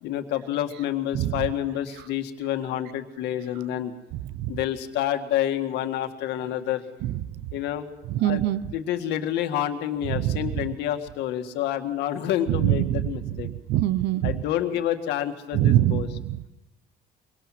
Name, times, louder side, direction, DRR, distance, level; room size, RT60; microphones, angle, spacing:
voice 1, 0.0-3.9 4.5-6.8 7.5-7.9 8.2-8.4 8.7-13.5 14.2-16.1, left 11 dB, 85° left, 6 dB, 1.9 m, -28 dB
voice 2, 8.1-8.6 10.1-10.6 12.5-13.1 13.4-14.4 15.5-16.5, right 13 dB, 85° right, 16 dB, 0.8 m, -24 dB
23.0 x 19.0 x 6.0 m, 0.96 s
cardioid pair, 110°, 17 cm